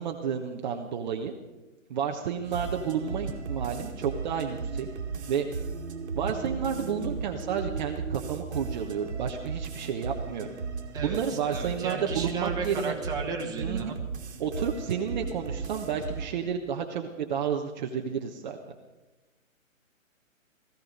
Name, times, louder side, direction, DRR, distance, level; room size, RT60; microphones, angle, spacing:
voice 1, 0.0-1.3 1.9-4.9 5.3-5.5 6.1-10.5 11.0-13.0 13.6-13.9 14.4-18.6, right 7 dB, 35° right, 3 dB, 1.2 m, -31 dB
sound 1, 2.4-16.3, right 5 dB, 55° right, 2.0 m, -36 dB
voice 2, 10.9-14.0, right 5 dB, 10° right, -1 dB, 1.8 m, -34 dB
18.0 x 15.0 x 5.3 m, 1.1 s
hypercardioid pair, 145°, 41 cm